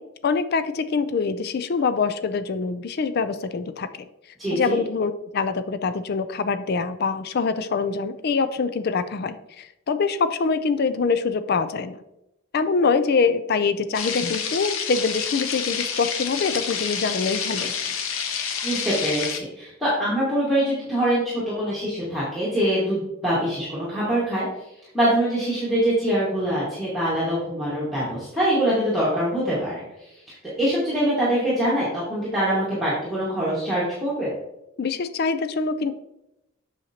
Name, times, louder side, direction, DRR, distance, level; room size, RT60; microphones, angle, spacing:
voice 1, 0.2-4.1 4.5-12.0 12.5-17.7 34.8-35.9, left 4 dB, 50° left, 12 dB, 0.4 m, -24 dB
voice 2, 4.4-4.8 18.6-24.5 24.9-29.8 30.3-34.3, right 1 dB, ahead, -9 dB, 1.7 m, -24 dB
sound 1, 13.9-19.4, left 7 dB, 80° left, 0.8 m, -28 dB
7.6 x 6.5 x 2.9 m, 0.88 s
head